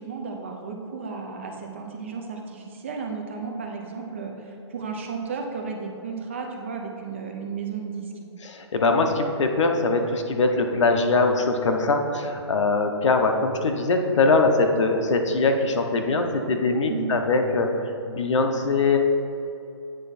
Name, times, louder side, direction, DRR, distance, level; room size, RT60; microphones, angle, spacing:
voice 1, 0.0-8.1 16.9-17.1, right 5 dB, 25° right, 2 dB, 0.5 m, -33 dB
voice 2, 8.4-19.0, left 3 dB, 75° left, 4 dB, 0.8 m, -22 dB
8.9 x 3.4 x 4.1 m, 2.6 s
hypercardioid pair, 180°, 15 cm